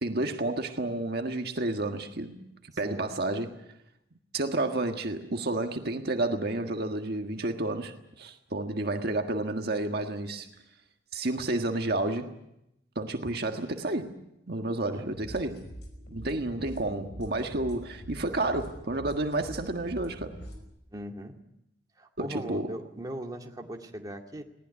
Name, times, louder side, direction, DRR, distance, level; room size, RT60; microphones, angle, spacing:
voice 1, 0.0-2.4 2.8-3.6 4.3-10.5 11.1-12.3 12.9-14.2 14.5-15.7 16.1-20.4 22.2-22.7, right 2 dB, 60° right, 1.6 m, -30 dB
sound 1, 15.1-20.6, equal, 65° left, 5.4 m, -44 dB
voice 2, 20.9-21.4 22.0-24.4, right 1 dB, 20° right, 2.2 m, -39 dB
20.0 x 18.5 x 9.6 m
head